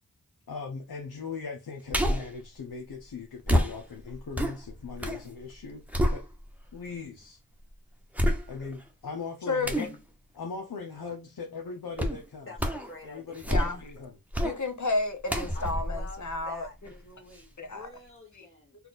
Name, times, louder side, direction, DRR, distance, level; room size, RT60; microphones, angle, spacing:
voice 1, 0.5-5.8 6.1-6.2 6.7-7.4 8.5-9.9 10.3-12.5 13.0-14.2, left 5 dB, 80° left, 0.8 m, -39 dB
sound 1, 1.9-2.4 3.5-5.2 5.6-6.7 7.2-7.3 8.1-8.8 9.6-10.0 12.0-12.2 12.6-12.9 13.3-13.9 14.3-14.6 15.3-17.0 17.3-17.4, equal, 5° right, 1.0 m, -28 dB
voice 2, 9.5-9.9 13.5-13.8 14.4-16.7 17.6-17.9 18.4-18.5, left 3 dB, 50° left, 1.1 m, -31 dB
voice 3, 12.5-13.3 15.5-16.7 17.0-18.8, left 2 dB, 35° left, 1.4 m, -47 dB
4.3 x 2.5 x 3.9 m
wide cardioid pair, 60°, 37 cm